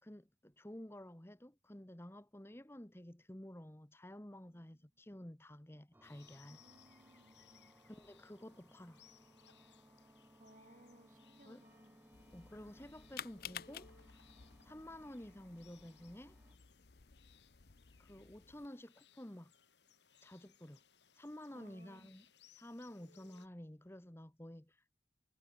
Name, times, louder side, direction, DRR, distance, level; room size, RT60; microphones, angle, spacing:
voice 1, 0.0-6.6 7.8-9.0 11.5-11.6 12.3-14.2 14.6-16.4 18.0-19.5 20.2-20.8 21.1-22.2 22.5-25.0, left 1 dB, 15° left, 1.1 m, -52 dB
voice 2, 4.5-4.8 6.5-7.7 10.4-12.0 21.5-22.2, right 1 dB, 50° right, 6.6 m, -64 dB
sound 1, 5.9-16.6, equal, 10° right, 7.2 m, -65 dB
sound 2, 6.0-23.5, left 7 dB, 85° left, 7.7 m, -68 dB
sound 3, 12.1-18.7, left 9 dB, 55° left, 0.7 m, -53 dB
head